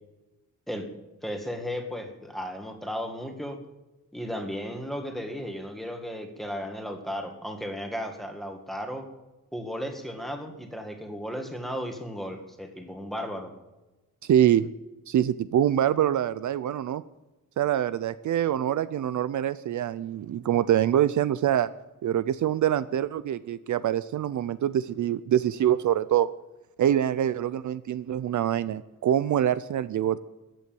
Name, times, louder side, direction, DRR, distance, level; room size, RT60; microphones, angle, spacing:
voice 1, 1.2-3.6 4.1-9.1 9.5-13.5, equal, ahead, 4 dB, 2.0 m, -35 dB
voice 2, 14.3-14.7 15.1-17.0 17.6-21.7 22.0-26.3 26.8-30.2, right 11 dB, 60° right, 15 dB, 0.5 m, -25 dB
15.0 x 8.3 x 9.2 m, 1.1 s
wide cardioid pair, 160°, 33 cm